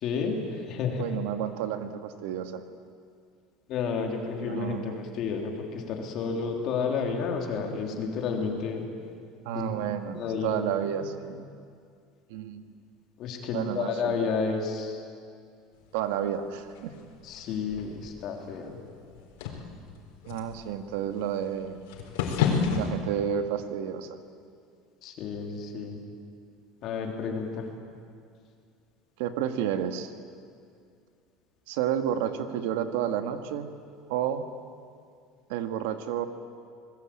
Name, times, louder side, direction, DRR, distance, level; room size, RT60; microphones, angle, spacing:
voice 1, 0.0-1.2 3.7-8.8 9.5-9.7 10.1-10.5 13.2-15.0 17.2-18.8 25.0-26.0 26.8-27.7, left 5 dB, 40° left, 2 dB, 3.4 m, -31 dB
voice 2, 1.0-2.6 4.4-5.0 9.5-11.5 12.3-12.7 13.5-14.2 15.9-16.9 20.3-21.8 22.7-24.2 29.2-30.1 31.7-33.7 34.1-34.5 35.5-36.3, right 9 dB, 80° right, 8 dB, 1.9 m, -31 dB
sound 1, 15.8-22.9, left 6 dB, 85° left, 4.3 m, -33 dB
27.0 x 20.5 x 8.8 m, 2.3 s
cardioid pair, 175°, 0 cm